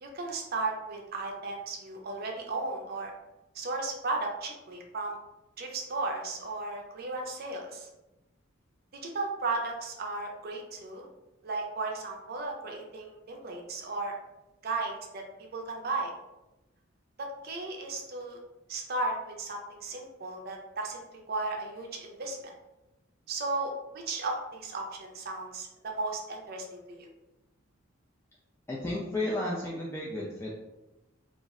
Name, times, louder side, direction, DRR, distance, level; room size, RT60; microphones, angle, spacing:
voice 1, 0.0-3.1 3.5-5.2 5.6-7.9 8.9-11.1 11.4-14.1 14.6-15.2 15.5-16.1 17.2-18.4 18.7-21.0 21.3-22.5 23.3-27.1, right 3 dB, 50° right, 1 dB, 0.5 m, -35 dB
voice 2, 28.7-30.6, left 1 dB, 10° left, -6 dB, 0.3 m, -33 dB
2.4 x 2.0 x 3.5 m, 0.99 s
head